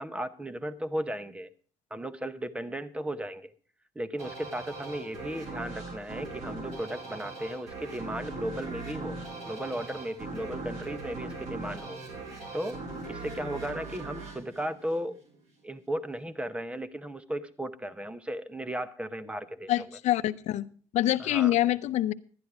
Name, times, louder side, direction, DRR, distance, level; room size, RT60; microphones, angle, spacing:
voice 1, 0.0-1.5 1.9-3.5 3.9-9.2 9.5-12.0 12.5-12.8 13.1-15.2 15.6-19.9 21.2-21.5, right 1 dB, 10° right, 13 dB, 0.8 m, -35 dB
sound 1, 4.2-15.4, right 3 dB, 75° right, 4.7 m, -40 dB
voice 2, 19.7-20.6 20.9-22.1, left 14 dB, 75° left, 14 dB, 0.6 m, -25 dB
11.5 x 10.5 x 4.7 m, 0.41 s
cardioid pair, 115°, 12 cm